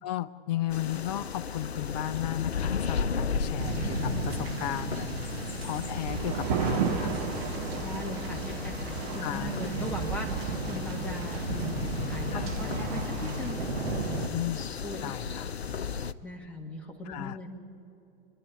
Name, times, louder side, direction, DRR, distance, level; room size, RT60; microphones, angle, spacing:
voice 1, 0.0-7.2 9.2-9.7 12.3-12.5 14.3-14.7 15.0-15.5 17.1-17.4, left 13 dB, 40° left, 15 dB, 0.7 m, -35 dB
sound 1, 0.7-16.1, left 6 dB, 80° left, 0.6 m, -35 dB
sound 2, 3.6-14.3, right 4 dB, 70° right, 1.5 m, -36 dB
sound 3, 6.1-13.5, right 7 dB, 45° right, 2.1 m, -35 dB
voice 2, 7.8-13.6 14.0-14.4 14.8-15.1 16.2-17.5, left 1 dB, 5° left, -1 dB, 1.9 m, -40 dB
27.5 x 11.0 x 9.6 m, 2.8 s
figure-of-eight pair, 100°, 31 cm